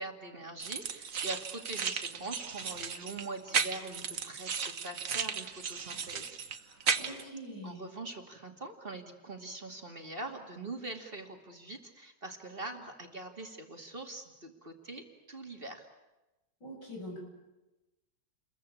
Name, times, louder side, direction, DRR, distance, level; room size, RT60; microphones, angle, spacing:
voice 1, 0.0-6.4 7.6-15.9, right 2 dB, 30° right, 4 dB, 2.6 m, -43 dB
sound 1, 0.6-7.2, right 6 dB, 50° right, 1.5 m, -35 dB
voice 2, 6.7-7.8 16.6-17.2, equal, 85° left, 0 dB, 8.0 m, -44 dB
30.0 x 22.0 x 8.5 m, 1.0 s
omnidirectional pair, 1.8 m